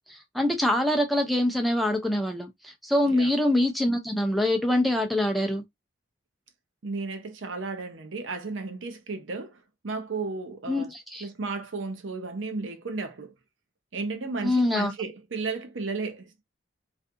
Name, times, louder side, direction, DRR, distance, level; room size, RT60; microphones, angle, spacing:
voice 1, 0.1-5.6 10.7-11.3 14.4-14.9, left 1 dB, ahead, 0.4 m, -25 dB
voice 2, 6.8-9.6 9.8-10.9 11.2-13.3 13.9-16.4, right 3 dB, 85° right, 0.6 m, -33 dB
2.5 x 2.4 x 2.5 m
head